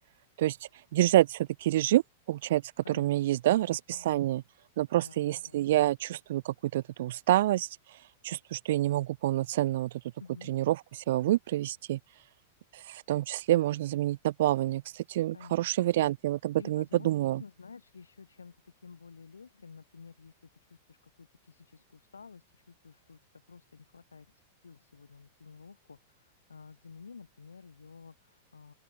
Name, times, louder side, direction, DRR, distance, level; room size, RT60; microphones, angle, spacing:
voice 1, 0.9-2.0 2.3-2.6 2.9-4.4 4.8-7.7 8.2-9.9 10.5-12.0 12.7-17.4, right 14 dB, 60° right, 0.4 m, -27 dB
voice 2, 2.8-4.3 5.0-5.7 10.2-10.5 15.3-15.9 16.6-28.7, left 5 dB, 80° left, 5.2 m, -52 dB
open air
figure-of-eight pair, 95°, 0 cm